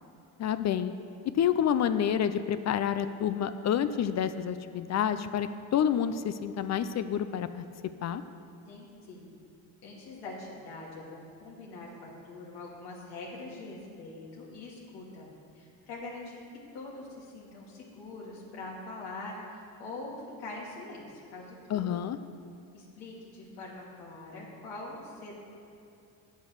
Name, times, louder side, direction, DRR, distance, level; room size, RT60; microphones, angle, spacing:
voice 1, 0.4-0.9 1.3-7.6 8.0-8.2 21.7-22.2, left 9 dB, 45° left, 12 dB, 0.5 m, -28 dB
voice 2, 8.7-9.3 9.8-15.3 15.5-16.4 16.7-21.9 22.7-25.3, left 2 dB, 80° left, -4 dB, 2.5 m, -43 dB
8.5 x 8.2 x 6.5 m, 2.7 s
cardioid pair, 100°, 40 cm